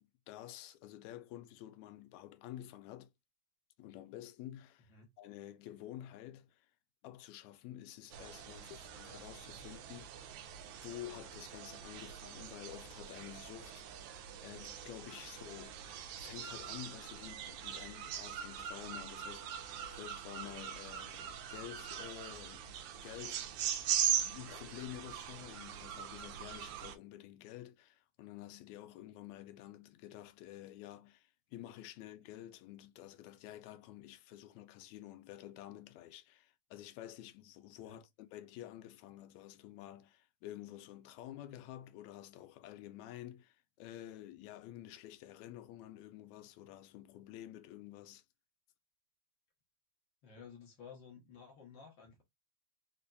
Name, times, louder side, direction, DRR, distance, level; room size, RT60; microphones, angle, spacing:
voice 1, 0.0-3.1 3.8-4.9 5.2-6.7 7.0-10.2 10.7-14.1 14.4-15.8 16.2-22.7 23.0-23.8 24.2-48.2, left 13 dB, 80° left, 1.8 m, -50 dB
sound 1, 8.1-27.0, right 9 dB, 90° right, 2.1 m, -41 dB
voice 2, 50.2-52.2, left 6 dB, 60° left, 1.3 m, -54 dB
4.9 x 2.6 x 2.2 m
omnidirectional pair, 3.3 m